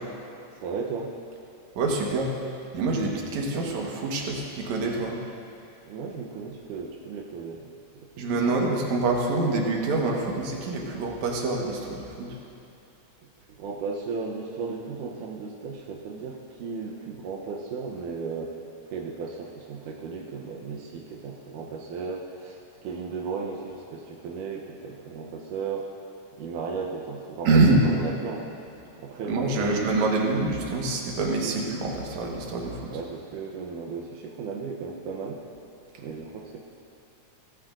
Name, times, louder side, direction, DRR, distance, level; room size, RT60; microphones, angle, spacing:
voice 1, 0.5-1.2 5.8-7.7 7.9-8.5 13.5-25.9 26.4-28.7 29.0-30.2 32.9-35.4 36.0-36.6, right 5 dB, 85° right, -1 dB, 2.4 m, -35 dB
voice 2, 1.8-2.3 2.7-5.2 8.2-12.4 27.4-27.8 29.3-33.0, right 3 dB, 65° right, -1 dB, 2.6 m, -25 dB
17.5 x 15.5 x 2.6 m, 2.7 s
omnidirectional pair, 3.6 m